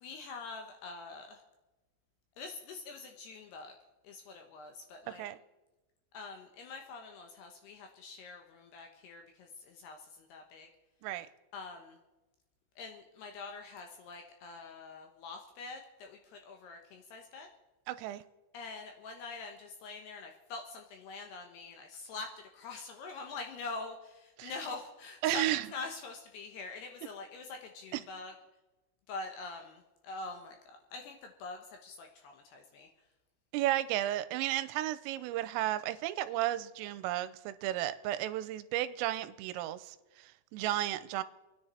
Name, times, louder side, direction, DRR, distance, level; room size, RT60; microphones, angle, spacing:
voice 1, 0.0-1.4 2.4-3.7 4.0-5.3 6.1-10.0 10.3-10.7 11.5-12.0 12.8-17.5 18.5-22.3 22.5-28.3 29.1-30.6 30.9-32.9, left 3 dB, 70° left, 3 dB, 2.6 m, -45 dB
voice 2, 17.9-18.2 24.4-24.5 25.2-25.7 27.9-28.0 33.5-41.2, right 14 dB, 85° right, 14 dB, 3.3 m, -33 dB
28.5 x 10.0 x 4.3 m, 1.1 s
omnidirectional pair, 5.8 m